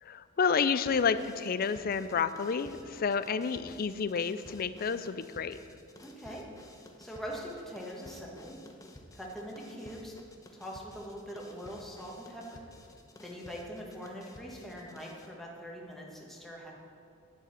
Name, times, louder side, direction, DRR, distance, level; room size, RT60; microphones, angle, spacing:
voice 1, 0.0-5.6, left 6 dB, 45° left, 13 dB, 0.4 m, -30 dB
sound 1, 0.8-15.3, left 1 dB, 15° left, 0.8 m, -53 dB
voice 2, 6.0-6.4 7.0-8.5 9.1-10.1 10.5-12.6 13.2-16.7, equal, ahead, -3 dB, 1.5 m, -43 dB
10.5 x 6.7 x 7.2 m, 2.6 s
head